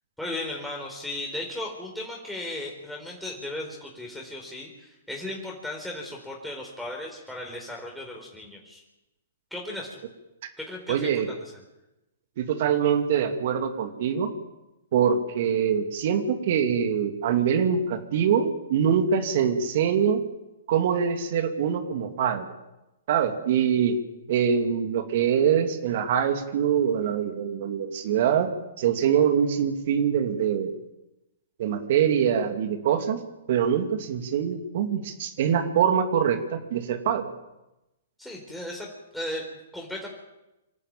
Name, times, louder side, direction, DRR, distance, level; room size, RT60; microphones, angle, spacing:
voice 1, 0.2-8.8 9.5-10.0 10.6-11.5 38.2-38.9 39.1-39.4 39.7-40.1, left 1 dB, ahead, -2 dB, 4.5 m, -36 dB
voice 2, 10.9-11.3 12.4-14.3 14.9-20.2 20.7-22.5 23.1-24.0 24.3-28.5 28.8-30.7 31.6-33.2 33.5-37.3, right 8 dB, 55° right, 6 dB, 2.6 m, -24 dB
26.0 x 12.5 x 9.0 m, 0.96 s
hypercardioid pair, 120°, 0 cm